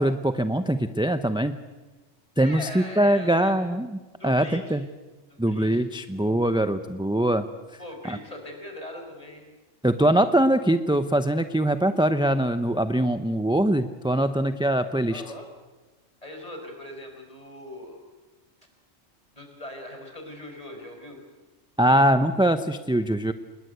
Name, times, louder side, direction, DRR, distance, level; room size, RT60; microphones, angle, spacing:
voice 1, 0.0-1.6 2.4-3.9 4.2-4.8 5.4-7.5 8.1-8.2 9.8-15.2 21.8-23.3, right 1 dB, 5° right, 9 dB, 0.5 m, -22 dB
voice 2, 2.4-3.6 4.2-4.9 5.3-5.9 7.8-9.4 15.1-15.5 16.2-18.0 19.3-21.2, left 1 dB, 30° left, 3 dB, 5.2 m, -40 dB
27.0 x 21.0 x 8.1 m, 1.2 s
omnidirectional pair, 1.3 m